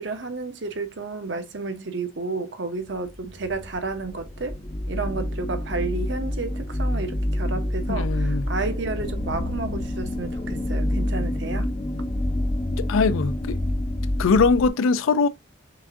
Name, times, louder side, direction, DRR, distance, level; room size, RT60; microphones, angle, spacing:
voice 1, 0.0-4.6 4.9-11.7, right 3 dB, 65° right, 0.8 m, -31 dB
sound 1, 3.0-14.7, left 1 dB, 35° left, 0.5 m, -27 dB
voice 2, 7.9-8.4 12.8-13.6 14.2-15.3, left 4 dB, 85° left, 0.4 m, -21 dB
5.9 x 2.6 x 2.4 m
head